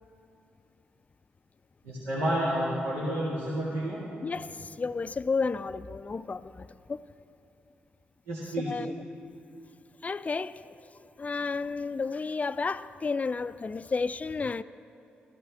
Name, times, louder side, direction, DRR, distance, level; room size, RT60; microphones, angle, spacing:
voice 1, 1.8-4.0 8.3-8.7, right 1 dB, 90° right, 2.0 m, -30 dB
voice 2, 4.2-7.0 8.7-8.9 10.0-10.6 11.2-14.6, left 4 dB, 35° left, 0.3 m, -32 dB
13.5 x 13.5 x 3.5 m
hypercardioid pair, 45°, 5 cm